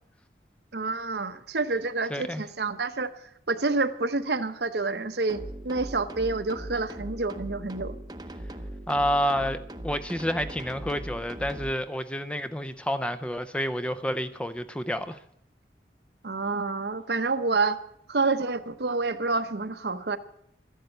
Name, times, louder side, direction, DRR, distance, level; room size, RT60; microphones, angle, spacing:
voice 1, 0.7-3.1 3.5-8.0 16.2-17.8 18.1-20.2, right 3 dB, 70° right, 0.9 m, -28 dB
voice 2, 2.1-2.4 8.9-9.6 9.8-15.2, equal, 5° left, 0.5 m, -29 dB
sound 1, 5.3-11.7, right 1 dB, 25° right, 0.8 m, -39 dB
13.0 x 11.0 x 7.9 m
head